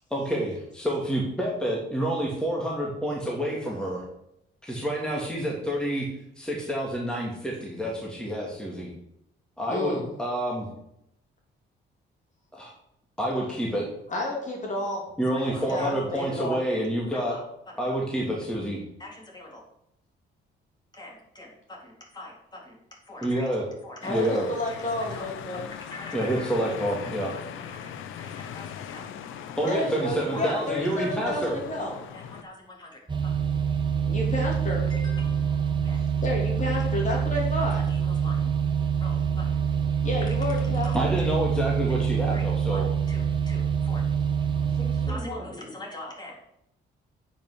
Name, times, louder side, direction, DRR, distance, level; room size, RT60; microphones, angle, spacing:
voice 1, 0.1-4.0 4.6-6.1 6.4-8.9 9.6-10.7 12.5-12.7 13.2-13.9 15.2-17.3 17.8-18.8 23.2-23.6 24.1-24.5 26.1-27.3 29.6-31.6 40.9-42.9, right 1 dB, 5° left, -3 dB, 2.4 m, -28 dB
voice 2, 9.7-10.1 14.1-15.0 15.4-16.6 24.0-25.6 29.7-31.9 34.1-34.8 36.2-37.8 40.0-41.1, left 1 dB, 40° left, -1 dB, 3.3 m, -30 dB
voice 3, 15.3-15.9 16.1-16.3 17.1-17.4 17.8-17.9 19.0-19.6 20.9-22.8 23.1-23.5 23.8-25.3 25.6-29.1 29.6-31.5 32.1-32.5 32.8-32.9 34.9-36.3 36.7-36.8 37.1-37.2 37.6-38.4 39.0-39.6 40.7-41.3 42.3-42.4 42.7-44.0 44.7-46.3, left 2 dB, 20° left, -2 dB, 3.7 m, -43 dB
sound 1, 24.0-32.4, left 9 dB, 85° left, 0.8 m, -40 dB
sound 2, 33.1-45.1, right 7 dB, 25° right, 1.3 m, -26 dB
8.7 x 5.8 x 6.4 m, 0.79 s
cardioid pair, 90°, 20 cm